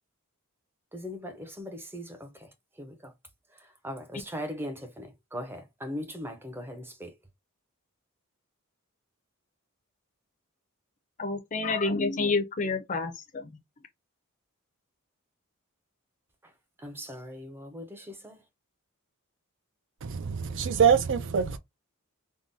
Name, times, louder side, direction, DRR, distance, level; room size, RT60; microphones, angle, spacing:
voice 1, 0.9-3.1 3.5-7.2 16.4-16.5 16.8-18.4, equal, 10° right, 0.6 m, -40 dB
voice 2, 11.2-13.6, left 3 dB, 35° left, 0.5 m, -29 dB
voice 3, 20.0-21.6, right 7 dB, 60° right, 0.4 m, -24 dB
3.5 x 2.2 x 2.6 m
head